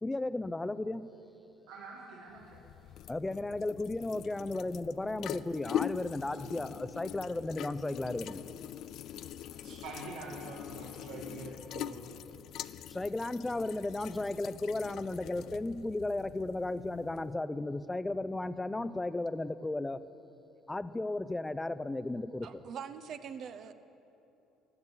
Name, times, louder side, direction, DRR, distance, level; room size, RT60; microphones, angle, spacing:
voice 1, 0.0-1.1 3.1-8.5 12.9-20.0 20.7-22.6, left 2 dB, 15° left, 14 dB, 0.6 m, -35 dB
voice 2, 1.7-2.4 9.5-12.0, right 4 dB, 90° right, -4 dB, 2.1 m, -45 dB
sound 1, 2.3-17.4, left 11 dB, 65° left, 0.4 m, -43 dB
voice 3, 22.4-23.7, right 7 dB, 60° right, 10 dB, 0.8 m, -43 dB
14.0 x 12.0 x 8.4 m, 3.0 s
supercardioid pair, 80°, 0 cm